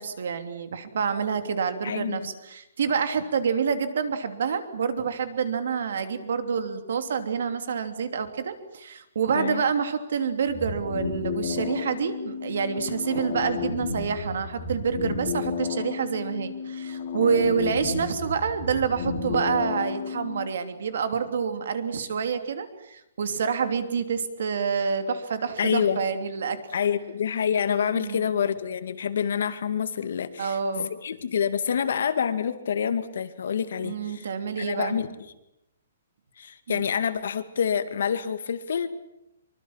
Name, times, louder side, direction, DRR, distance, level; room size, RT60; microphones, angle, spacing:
voice 1, 0.0-26.6 27.9-28.3 30.4-30.9 33.8-35.0 36.7-36.9, right 6 dB, 55° right, 9 dB, 3.0 m, -27 dB
voice 2, 1.8-2.3 9.3-9.6 25.6-26.0 26.7-34.3 34.6-35.1 36.4-38.9, left 7 dB, 55° left, 10 dB, 2.2 m, -27 dB
sound 1, 10.5-20.5, left 5 dB, 35° left, 3.2 m, -32 dB
25.0 x 24.5 x 7.4 m, 0.86 s
hypercardioid pair, 180°, 0 cm